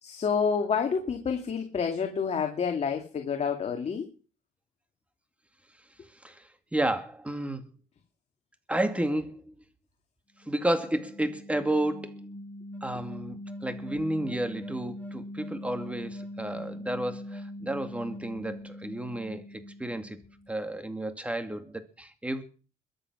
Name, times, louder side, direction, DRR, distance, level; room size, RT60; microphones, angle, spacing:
voice 1, 0.0-4.1, left 6 dB, 40° left, 4 dB, 2.3 m, -28 dB
voice 2, 6.2-7.6 8.7-9.5 10.5-12.3 12.8-20.2 20.5-22.4, right 1 dB, 5° right, 8 dB, 2.3 m, -32 dB
sound 1, 10.4-20.5, left 1 dB, 10° left, 4.0 m, -42 dB
22.0 x 7.8 x 6.2 m, 0.38 s
cardioid pair, 110°, 17 cm